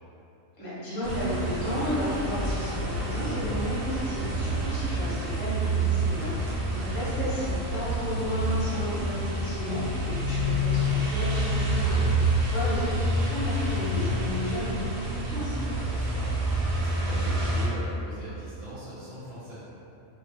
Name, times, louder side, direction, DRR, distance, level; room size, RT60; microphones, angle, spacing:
voice 1, 0.6-15.6, equal, 25° left, -11 dB, 0.5 m, -33 dB
sound 1, 1.0-17.7, right 1 dB, 75° right, 1.0 m, -28 dB
voice 2, 6.0-6.5 11.8-12.2 15.6-19.6, equal, 50° right, -13 dB, 0.6 m, -41 dB
2.4 x 2.2 x 2.6 m, 2.8 s
omnidirectional pair, 1.4 m